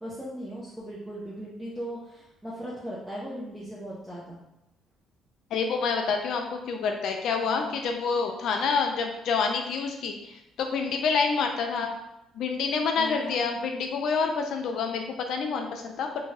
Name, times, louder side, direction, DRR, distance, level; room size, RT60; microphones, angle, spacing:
voice 1, 0.0-4.4 7.4-7.8 13.0-13.4, equal, 5° right, -7 dB, 0.6 m, -38 dB
voice 2, 5.5-11.9 12.4-16.2, left 5 dB, 70° left, 4 dB, 0.3 m, -28 dB
2.5 x 2.2 x 3.2 m, 0.87 s
cardioid pair, 105°, 0 cm